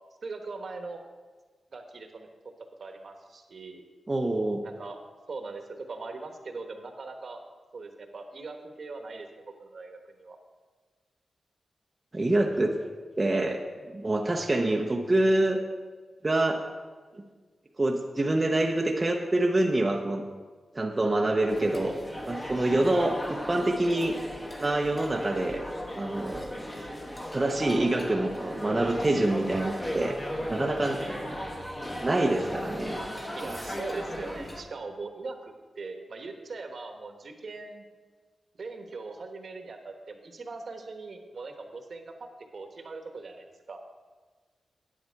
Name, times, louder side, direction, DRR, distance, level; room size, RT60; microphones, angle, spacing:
voice 1, 0.2-1.0 1.7-2.3 2.8-3.8 4.6-5.0 5.3-7.4 7.7-10.4 22.7-23.1 31.0-31.4 33.4-37.8 38.5-42.3 42.5-43.8, right 3 dB, 55° right, 5 dB, 1.1 m, -41 dB
voice 2, 4.1-4.6 12.1-12.8 13.2-13.6 13.9-15.6 16.2-16.6 17.8-20.2 20.7-22.0 22.2-24.2 24.6-25.6 26.0-26.5 27.3-30.2 30.5-31.0 31.9-33.0, right 2 dB, 25° right, 1 dB, 0.7 m, -26 dB
sound 1, 21.5-34.6, equal, 20° left, 1.1 m, -36 dB
9.5 x 9.0 x 4.6 m, 1.4 s
wide cardioid pair, 115°, 0 cm